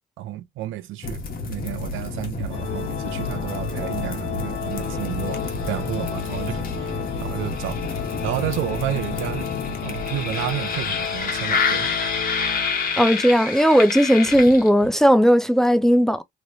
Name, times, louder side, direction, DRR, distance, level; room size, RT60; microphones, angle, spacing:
voice 1, 0.2-7.8 8.2-9.4 9.8-11.9, right 13 dB, 90° right, 0.6 m, -31 dB
sound 1, 1.0-14.9, left 4 dB, 45° left, 1.2 m, -29 dB
Organ, 2.5-13.4, left 7 dB, 75° left, 1.1 m, -33 dB
voice 2, 13.0-16.2, equal, ahead, 0.5 m, -16 dB
3.1 x 3.0 x 2.7 m
cardioid pair, 90°, 20 cm